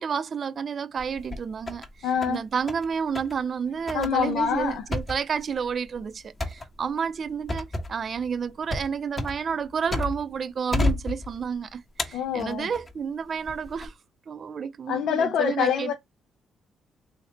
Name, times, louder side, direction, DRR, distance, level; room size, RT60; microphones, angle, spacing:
voice 1, 0.0-13.9 14.3-15.9, right 6 dB, 50° right, 0.4 m, -30 dB
sound 1, 1.0-1.9 2.2-2.9 3.2-3.4 3.9-10.4 10.7-11.6 12.0-12.9 13.5-13.9, left 2 dB, 30° left, 1.2 m, -31 dB
voice 2, 2.0-2.4 3.9-4.9 12.1-12.7 14.9-15.9, left 8 dB, 80° left, 0.4 m, -25 dB
3.2 x 2.8 x 4.1 m
cardioid pair, 90°, 0 cm